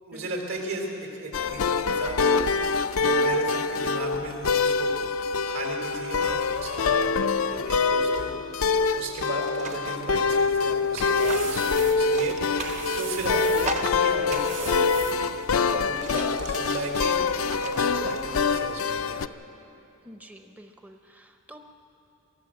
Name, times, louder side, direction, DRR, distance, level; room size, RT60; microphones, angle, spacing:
voice 1, 0.1-2.5 3.0-4.9 5.4-8.4 9.0-12.4 12.6-15.3 15.5-19.3, right 2 dB, 75° right, 1 dB, 3.8 m, -35 dB
sound 1, 1.3-19.3, left 4 dB, 75° left, 0.5 m, -25 dB
sound 2, 8.5-10.0 11.3-11.5 12.1-13.0 13.6-14.2 14.9-15.0 15.4-18.4, right 2 dB, 35° right, 0.8 m, -39 dB
sound 3, 10.6-15.7, right 6 dB, 60° right, 2.8 m, -39 dB
voice 2, 20.0-21.6, equal, 5° right, 5 dB, 0.6 m, -48 dB
23.5 x 15.0 x 7.7 m, 2.9 s
head